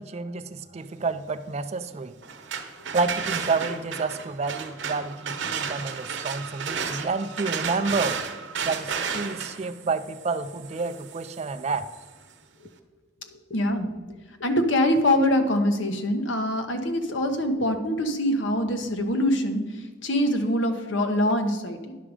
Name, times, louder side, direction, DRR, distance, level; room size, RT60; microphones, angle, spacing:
voice 1, 0.0-2.2 2.9-8.2 8.6-11.8, right 4 dB, 35° right, 11 dB, 0.4 m, -29 dB
sound 1, 2.2-12.1, right 6 dB, 70° right, 0.9 m, -33 dB
voice 2, 13.3-13.9 14.4-22.0, left 1 dB, 75° left, 6 dB, 1.0 m, -24 dB
10.0 x 6.2 x 4.9 m, 1.3 s
head